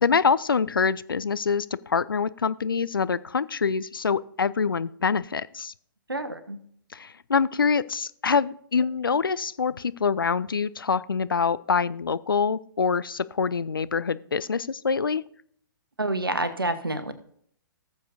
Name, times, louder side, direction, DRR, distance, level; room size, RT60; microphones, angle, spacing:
voice 1, 0.0-5.7 6.9-15.2, left 5 dB, 75° left, 17 dB, 0.4 m, -25 dB
voice 2, 6.1-6.6 16.0-17.1, right 2 dB, 80° right, 11 dB, 1.1 m, -28 dB
17.5 x 7.0 x 2.6 m, 0.65 s
figure-of-eight pair, 120°, 12 cm